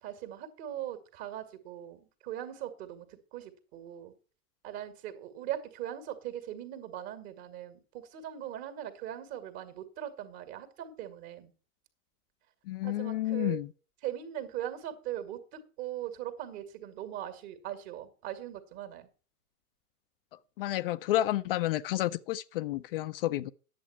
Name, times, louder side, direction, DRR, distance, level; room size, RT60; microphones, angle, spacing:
voice 1, 0.0-4.1 4.6-11.5 12.8-13.6 14.0-19.1, right 11 dB, 45° right, 2.0 m, -40 dB
voice 2, 12.7-13.7 20.6-23.5, left 15 dB, 40° left, 0.4 m, -30 dB
10.0 x 7.7 x 5.6 m
figure-of-eight pair, 90°, 44 cm